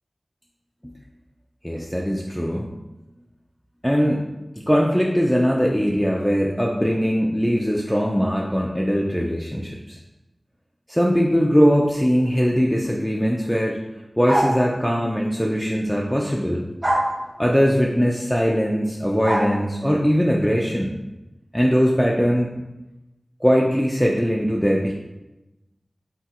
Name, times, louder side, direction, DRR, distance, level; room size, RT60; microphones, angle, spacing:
voice 1, 1.6-2.7 3.8-4.3 4.7-10.0 10.9-13.8 14.2-16.7 17.4-20.9 21.5-22.5 23.4-24.9, equal, 5° left, -2 dB, 0.4 m, -20 dB
sound 1, 14.3-14.6 16.8-17.1 19.2-19.5, right 1 dB, 45° right, 0.8 m, -21 dB
3.7 x 2.4 x 4.2 m, 0.99 s
wide cardioid pair, 65°, 0 cm